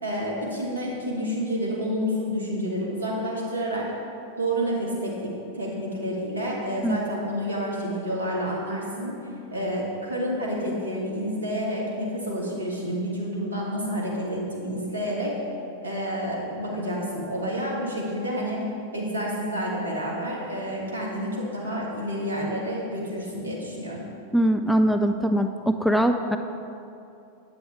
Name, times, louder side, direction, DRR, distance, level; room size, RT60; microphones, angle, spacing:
voice 1, 0.0-3.9 4.4-9.1 9.5-15.3 15.8-18.6 18.9-24.1, equal, 75° right, -3 dB, 1.7 m, -29 dB
voice 2, 24.3-26.4, right 1 dB, ahead, 6 dB, 0.3 m, -22 dB
8.3 x 7.9 x 3.3 m, 2.6 s
figure-of-eight pair, 90°, 0 cm